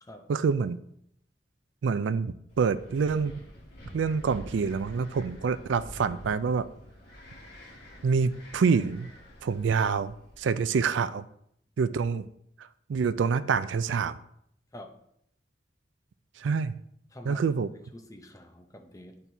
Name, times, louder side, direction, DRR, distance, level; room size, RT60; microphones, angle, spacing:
voice 1, 0.3-0.8 1.8-3.4 3.9-6.7 8.0-9.1 9.4-11.2 11.8-12.3 12.6-14.2 16.4-16.7 17.3-17.7, right 5 dB, 85° right, 13 dB, 0.4 m, -27 dB
Wind, 2.5-10.6, equal, 60° left, 1.5 m, -48 dB
voice 2, 17.1-17.4 17.9-19.2, left 1 dB, 20° left, 5 dB, 0.7 m, -46 dB
11.0 x 4.3 x 2.7 m, 0.71 s
head